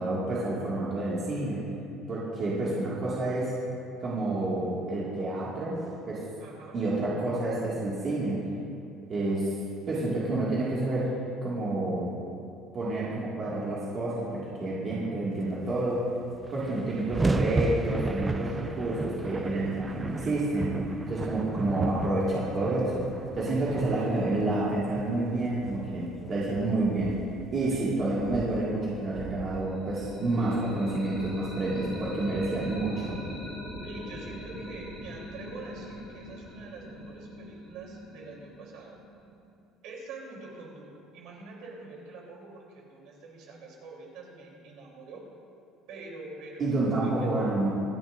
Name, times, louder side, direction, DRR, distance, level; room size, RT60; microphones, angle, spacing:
voice 1, 0.0-1.7 2.1-3.5 4.0-6.2 6.7-8.5 9.1-9.6 9.9-12.1 12.7-16.1 16.5-20.8 21.1-23.1 23.4-27.2 27.5-33.2 46.6-47.7, right 2 dB, 30° right, -7 dB, 2.0 m, -29 dB
voice 2, 6.4-6.8 27.7-27.8 33.8-39.0 39.8-45.3 45.9-47.1, right 3 dB, 60° right, -2 dB, 3.3 m, -45 dB
sound 1, 16.0-16.1 16.2-30.6, right 2 dB, 10° right, 0.4 m, -35 dB
sound 2, 29.7-39.5, equal, 20° left, 3.3 m, -42 dB
25.0 x 10.5 x 2.6 m, 2.6 s
cardioid pair, 175°, 0 cm